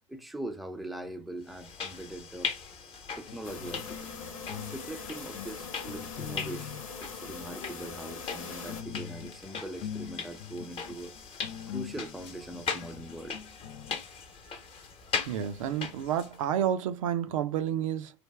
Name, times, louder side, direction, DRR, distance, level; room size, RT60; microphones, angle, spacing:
voice 1, 0.1-2.5 3.2-4.1 4.7-11.1 11.7-13.4, right 1 dB, ahead, 0.5 m, -41 dB
sound 1, 1.5-16.4, left 5 dB, 35° left, 0.9 m, -40 dB
sound 2, 3.3-4.8 5.1-6.9 7.4-7.8 8.4-14.0, left 9 dB, 65° left, 0.4 m, -43 dB
sound 3, 3.4-8.8, left 5 dB, 90° left, 1.0 m, -42 dB
voice 2, 15.3-18.1, right 9 dB, 80° right, 0.6 m, -30 dB
3.3 x 2.3 x 3.3 m
hypercardioid pair, 95°, 17 cm